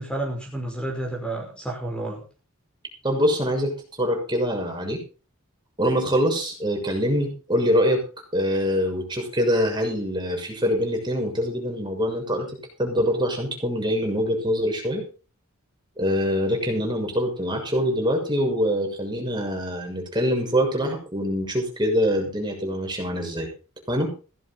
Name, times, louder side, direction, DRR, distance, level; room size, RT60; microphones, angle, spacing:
voice 1, 0.0-2.2, right 1 dB, 5° left, 0 dB, 5.2 m, -30 dB
voice 2, 3.0-5.0 5.8-8.0 8.3-12.5 12.8-15.0 16.0-23.5 23.9-24.1, equal, 20° right, 2 dB, 6.6 m, -24 dB
17.0 x 13.5 x 4.0 m, 0.35 s
head